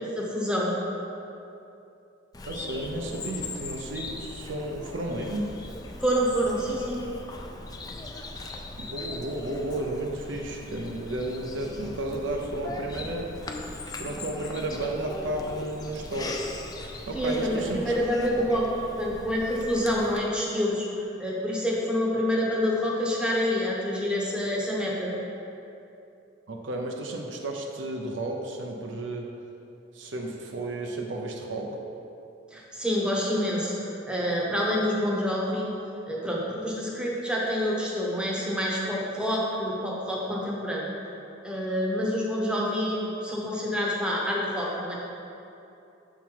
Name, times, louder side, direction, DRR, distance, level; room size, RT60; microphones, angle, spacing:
voice 1, 0.2-0.7 6.0-7.0 17.1-18.7 19.0-25.1 32.5-35.7 36.1-40.9 41.4-44.9, equal, 5° right, -4 dB, 0.8 m, -27 dB
Bird vocalization bird call bird song, 2.3-20.2, left 2 dB, 20° left, 0.4 m, -39 dB
voice 2, 2.4-5.5 8.8-13.3 13.9-16.4 17.1-17.9 18.4-18.5 26.5-29.3 29.9-31.8, right 1 dB, 75° right, 1 dB, 0.6 m, -33 dB
7.0 x 3.7 x 4.6 m, 2.8 s
head